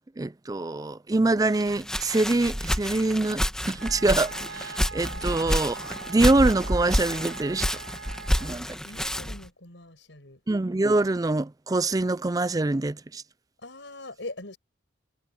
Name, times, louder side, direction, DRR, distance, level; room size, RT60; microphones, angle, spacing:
voice 1, 0.2-5.8 6.1-7.7 8.4-8.8 10.5-13.2, right 2 dB, 20° right, 0.4 m, -25 dB
Walk footsteps, 1.5-9.5, equal, 5° left, 1.3 m, -29 dB
Wind instrument woodwind instrument, 3.8-8.6, right 4 dB, 90° right, 4.8 m, -41 dB
voice 2, 8.8-10.4 13.6-14.6, left 2 dB, 75° left, 5.3 m, -42 dB
head